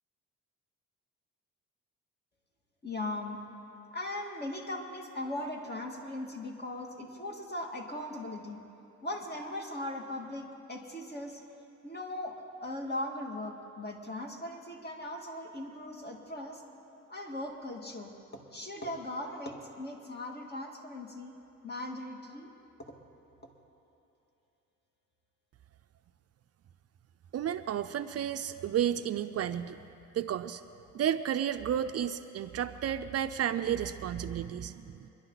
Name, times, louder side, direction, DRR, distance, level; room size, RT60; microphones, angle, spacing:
voice 1, 2.8-3.4 3.9-8.6 9.0-11.4 11.8-12.4 12.6-16.6 17.1-18.1 18.5-21.3 21.6-22.5 22.9-23.0, left 1 dB, 35° left, 1 dB, 2.3 m, -39 dB
voice 2, 27.3-29.8 30.1-30.6 30.9-35.1, right 10 dB, 55° right, 10 dB, 0.5 m, -32 dB
24.5 x 11.0 x 4.0 m, 2.8 s
cardioid pair, 90°, 30 cm